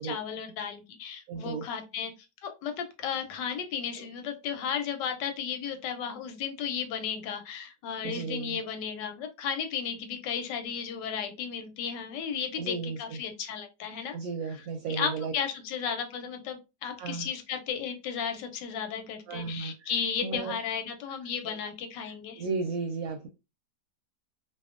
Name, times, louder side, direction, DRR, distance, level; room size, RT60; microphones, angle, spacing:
voice 1, 0.0-2.1 2.4-14.2 14.9-22.4, left 7 dB, 85° left, 6 dB, 1.3 m, -34 dB
voice 2, 1.3-1.7 4.0-4.1 8.0-8.6 12.6-13.2 14.1-15.3 17.0-17.3 19.3-19.9 20.2-20.5 21.4-21.6 22.0-23.3, right 4 dB, 70° right, 2 dB, 0.9 m, -34 dB
2.8 x 2.3 x 2.4 m, 0.27 s
omnidirectional pair, 1.8 m